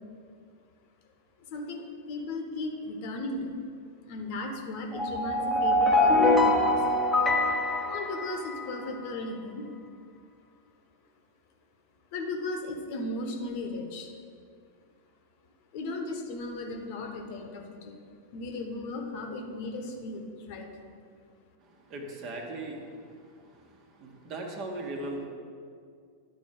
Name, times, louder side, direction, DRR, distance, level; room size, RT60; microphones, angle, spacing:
voice 1, 1.5-3.5 4.1-6.8 7.8-9.7 12.1-14.1 15.7-18.0 18.3-20.7, left 2 dB, 45° left, 3 dB, 1.0 m, -36 dB
sound 1, 4.9-8.9, left 2 dB, 5° left, 0.9 m, -24 dB
voice 2, 21.9-22.9 24.0-25.3, right 2 dB, 40° right, 2 dB, 1.3 m, -37 dB
11.0 x 4.2 x 5.2 m, 2.2 s
figure-of-eight pair, 90°, 0 cm